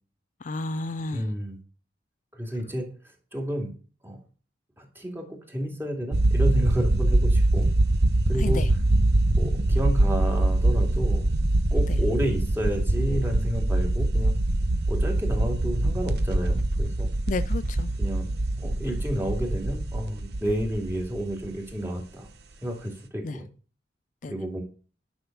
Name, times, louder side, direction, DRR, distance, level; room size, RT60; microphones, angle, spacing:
voice 1, 0.4-1.2 8.4-8.7 17.3-17.9 23.2-23.4 24.2-24.3, left 2 dB, 45° left, 12 dB, 0.5 m, -31 dB
voice 2, 1.1-1.6 2.3-2.9 3.3-3.7 4.0-4.2 4.8-7.7 8.3-8.6 9.4-11.3 11.7-14.3 14.9-17.1 18.0-18.3 18.6-22.3 22.6-23.5 24.3-24.6, equal, 15° right, 1 dB, 2.6 m, -31 dB
sound 1, 6.1-21.7, right 1 dB, 65° right, 1.0 m, -23 dB
10.5 x 6.0 x 5.5 m, 0.38 s
head